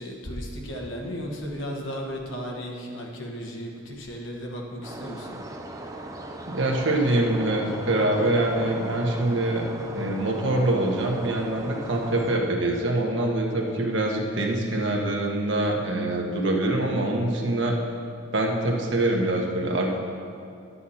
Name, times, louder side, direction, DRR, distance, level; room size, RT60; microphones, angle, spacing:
voice 1, 0.0-5.4, equal, 70° left, 0 dB, 1.5 m, -35 dB
sound 1, 4.8-12.4, right 1 dB, 15° right, 0.6 m, -38 dB
voice 2, 6.5-9.7 9.9-17.7 18.3-20.0, right 1 dB, 65° right, 0 dB, 1.3 m, -24 dB
11.0 x 8.4 x 4.3 m, 2.5 s
head